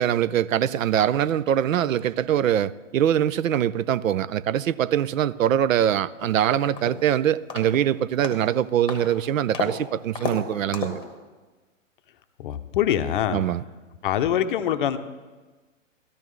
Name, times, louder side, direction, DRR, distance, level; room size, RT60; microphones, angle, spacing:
voice 1, 0.0-11.0 13.3-13.6, right 10 dB, 80° right, 0.5 m, -23 dB
sound 1, 6.2-6.3 6.8-7.1 7.5-7.8 8.2-8.5 8.9-9.1 9.5-9.8 10.2-10.4 10.7-11.0, left 5 dB, 10° left, 1.1 m, -32 dB
voice 2, 12.4-13.4 14.0-15.0, left 10 dB, 40° left, 0.6 m, -24 dB
13.5 x 12.0 x 3.1 m
hypercardioid pair, 140°, 39 cm